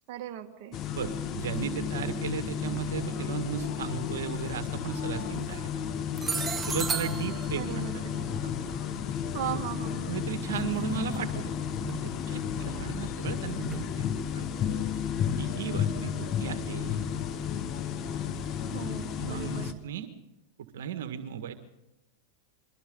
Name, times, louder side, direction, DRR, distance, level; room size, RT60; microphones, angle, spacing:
voice 1, 0.1-0.8 7.6-8.3 9.3-10.2 18.7-19.8, right 12 dB, 50° right, 3 dB, 1.9 m, -38 dB
sound 1, 0.7-19.7, left 8 dB, 40° left, 1.5 m, -33 dB
voice 2, 1.0-5.7 6.0-6.1 6.7-7.9 8.4-8.5 9.5-9.6 10.1-14.1 14.3-14.5 15.4-17.1 19.2-20.1 20.7-21.5, right 9 dB, 75° right, 8 dB, 1.7 m, -36 dB
sound 2, 2.1-2.2 4.2-4.4 5.2-5.6 6.1-9.1 10.5-10.8 11.1-11.2 11.9-12.0 13.7-13.9, right 5 dB, 20° right, 1.2 m, -36 dB
sound 3, 2.8-19.8, left 10 dB, 70° left, 2.3 m, -51 dB
28.5 x 23.0 x 3.9 m, 0.91 s
hypercardioid pair, 110°, 0 cm